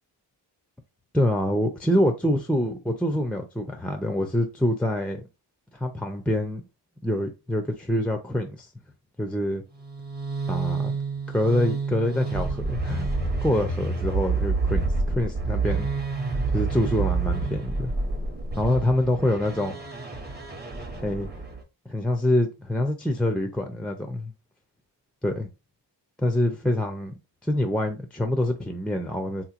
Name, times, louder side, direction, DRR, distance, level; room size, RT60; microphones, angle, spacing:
voice 1, 1.1-5.2 5.7-6.6 7.0-8.7 9.2-9.6 10.5-11.0 11.3-13.1 13.4-15.9 16.5-17.9 18.6-19.8 21.0-21.3 21.9-24.3 25.2-25.5 26.2-27.1 27.4-29.4, left 1 dB, 5° left, 0.4 m, -25 dB
sound 1, 9.8-21.6, right 3 dB, 25° right, 0.7 m, -28 dB
3.7 x 2.9 x 2.4 m
wide cardioid pair, 125°, 43 cm